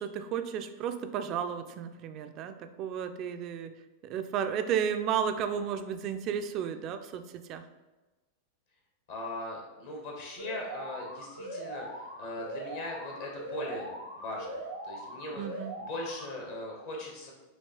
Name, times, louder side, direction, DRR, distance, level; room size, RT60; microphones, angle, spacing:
voice 1, 0.0-3.7 4.0-7.6 15.3-15.7, right 8 dB, 40° right, 9 dB, 0.3 m, -33 dB
voice 2, 9.1-13.9 14.2-14.6 14.9-15.4 15.8-17.3, left 1 dB, 55° left, -1 dB, 1.1 m, -39 dB
Alarm, 10.4-16.4, right 1 dB, 90° left, 1.0 m, -41 dB
6.3 x 2.8 x 3.0 m, 1.2 s
figure-of-eight pair, 90°, 0 cm